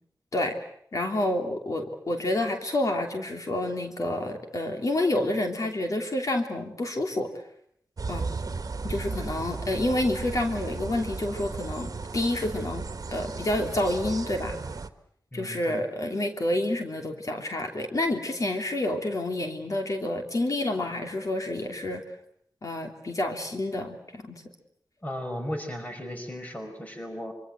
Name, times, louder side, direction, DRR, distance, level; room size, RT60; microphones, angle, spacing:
voice 1, 0.9-7.3 8.1-8.3 8.8-12.8 13.1-14.6 15.3-22.0 22.6-24.4, left 1 dB, 50° left, 4 dB, 3.1 m, -28 dB
sound 1, 8.0-14.9, right 4 dB, 55° right, 1.6 m, -35 dB
voice 2, 8.9-9.2 15.3-15.8 25.0-27.3, equal, 20° left, 5 dB, 5.0 m, -36 dB
25.5 x 25.0 x 7.8 m, 0.69 s
wide cardioid pair, 110°, 7 cm